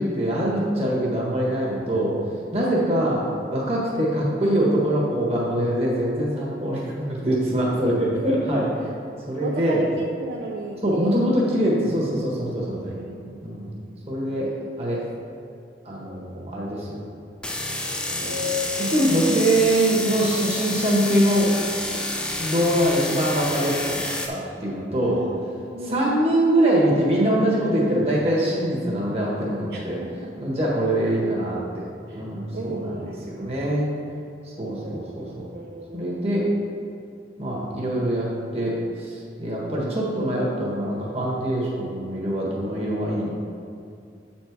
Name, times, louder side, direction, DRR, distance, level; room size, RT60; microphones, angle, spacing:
voice 1, 0.0-2.2 2.5-3.2 3.5-8.9 9.3-9.8 10.8-13.0 13.4-14.5 14.8-15.0 15.8-17.0 17.8-18.3 18.8-21.6 22.4-24.0 24.3-25.2 25.9-30.0 30.4-31.8 32.1-32.9 33.3-33.9 34.6-35.4 35.9-36.4 37.4-38.3 38.5-43.3, right 1 dB, 35° right, -4 dB, 1.5 m, -23 dB
voice 2, 2.6-3.0 9.4-11.3 12.8-13.5 18.2-19.2 25.0-26.3 29.7-30.3 32.1-32.2 32.5-33.5 34.8-36.1, equal, 60° right, -1 dB, 0.5 m, -34 dB
sound 1, 17.4-24.3, left 1 dB, 5° left, 0.3 m, -29 dB
8.1 x 4.4 x 4.7 m, 2.3 s
head